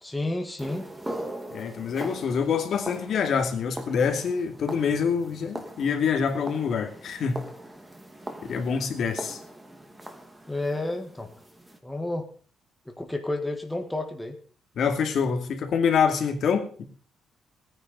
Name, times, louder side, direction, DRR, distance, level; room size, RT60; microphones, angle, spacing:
voice 1, 0.0-0.9 10.5-11.3 11.8-12.3 12.9-14.4, left 2 dB, 5° left, 3 dB, 1.7 m, -31 dB
sound 1, 0.6-11.8, right 1 dB, 10° right, 2.0 m, -41 dB
voice 2, 1.5-7.4 8.4-9.4 14.8-16.8, left 6 dB, 55° left, 5 dB, 2.3 m, -26 dB
17.0 x 10.0 x 5.3 m, 0.42 s
cardioid pair, 140°, 0 cm